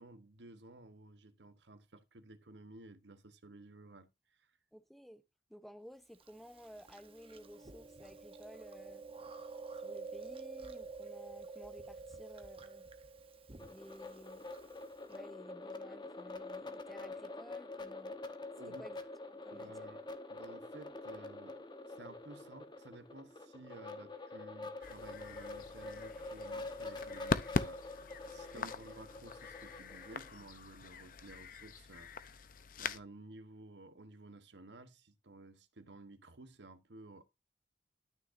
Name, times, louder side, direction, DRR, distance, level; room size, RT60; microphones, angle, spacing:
voice 1, 0.0-4.5 18.5-18.9 19.5-20.0 20.3-32.5 32.8-37.2, right 2 dB, 80° right, 1.1 m, -54 dB
voice 2, 4.7-5.2 5.5-9.0 9.7-12.8 13.6-14.5 15.1-18.1 18.8-19.0 19.3-19.9 28.5-28.7, equal, ahead, 0.8 m, -55 dB
Chewing mastication, 6.2-15.2, right 4 dB, 30° right, 1.0 m, -49 dB
sound 1, 13.6-30.3, left 2 dB, 25° left, 1.0 m, -46 dB
sound 2, 24.8-33.0, left 4 dB, 50° left, 0.7 m, -41 dB
12.5 x 6.3 x 2.6 m
head